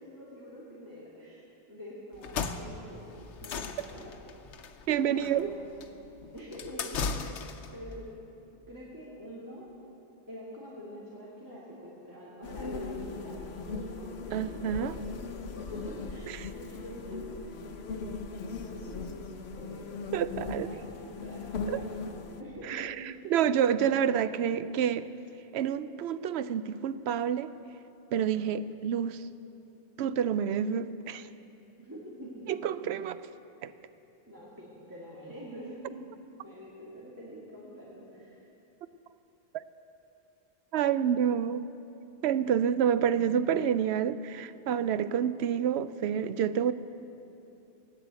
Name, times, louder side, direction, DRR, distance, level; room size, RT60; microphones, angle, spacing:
voice 1, 0.0-1.4 1.7-3.0 3.4-4.1 5.0-5.6 6.3-7.3 7.7-8.1 8.7-9.7 10.3-15.0 15.4-17.6 17.9-20.0 20.3-21.9 22.4-23.2 31.8-32.5 34.3-36.0 36.4-38.5, equal, 15° right, -8 dB, 2.4 m, -45 dB
sound 1, 2.1-7.8, left 5 dB, 90° left, 1.1 m, -37 dB
voice 2, 4.9-5.5 14.3-14.9 16.4-16.5 20.1-20.7 21.7-21.8 22.7-23.0 23.3-25.1 25.5-27.5 28.1-29.3 30.0-31.3 32.5-33.2 33.6-33.7 40.7-41.7 42.2-46.7, right 8 dB, 70° right, 14 dB, 0.8 m, -28 dB
sound 2, 12.4-22.4, left 4 dB, 65° left, 1.1 m, -39 dB
17.0 x 9.6 x 8.2 m, 2.9 s
omnidirectional pair, 1.2 m